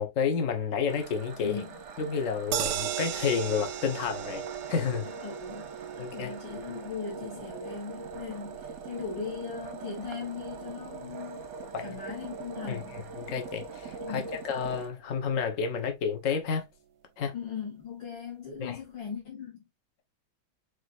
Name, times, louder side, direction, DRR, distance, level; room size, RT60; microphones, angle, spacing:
voice 1, 0.0-1.6 2.0-5.1 6.0-6.3 11.7-12.0 12.7-12.8 13.2-16.7 17.2-17.3 18.6-18.8, left 6 dB, 50° left, 1.2 m, -30 dB
sound 1, 0.9-14.9, right 5 dB, 50° right, 0.9 m, -42 dB
voice 2, 1.4-1.8 5.0-11.5 11.8-13.1 14.0-14.3 17.3-19.7, left 6 dB, 65° left, 2.0 m, -39 dB
sound 2, 2.5-14.7 15.1-15.2 15.5-15.6, right 10 dB, 70° right, 1.1 m, -40 dB
5.2 x 4.0 x 2.5 m
omnidirectional pair, 2.1 m